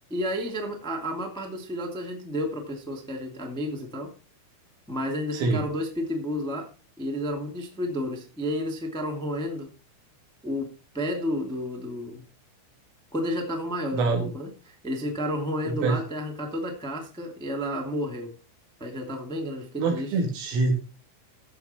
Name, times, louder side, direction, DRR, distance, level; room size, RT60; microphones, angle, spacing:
voice 1, 0.1-4.1 4.9-6.7 7.0-9.7 10.4-12.2 13.1-14.5 14.8-18.3 18.8-20.1, equal, 5° left, 1 dB, 0.6 m, -31 dB
voice 2, 5.3-5.6 13.9-14.3 15.7-16.0 19.8-20.8, right 3 dB, 80° right, 1 dB, 5.8 m, -25 dB
15.5 x 6.8 x 4.5 m, 0.33 s
omnidirectional pair, 5.8 m